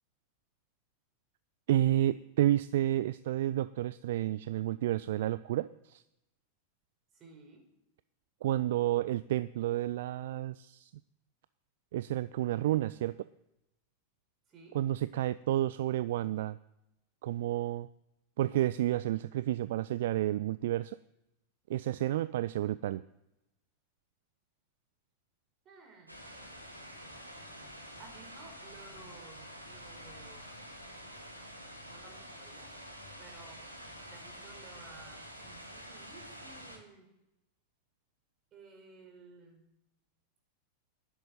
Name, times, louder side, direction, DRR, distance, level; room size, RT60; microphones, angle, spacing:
voice 1, 1.7-6.0 8.4-10.9 11.9-13.2 14.7-16.6 17.2-17.9 18.4-21.0 21.7-23.0, right 13 dB, 55° right, 16 dB, 0.4 m, -30 dB
voice 2, 7.1-7.7 14.5-14.8 25.6-26.1 28.0-30.5 31.9-32.8 33.2-33.7 34.1-37.1 38.5-39.7, right 4 dB, 30° right, 3 dB, 4.5 m, -55 dB
sound 1, 26.1-36.8, equal, 90° left, 2.2 m, -48 dB
10.5 x 7.9 x 9.3 m, 0.88 s
figure-of-eight pair, 90°, 0 cm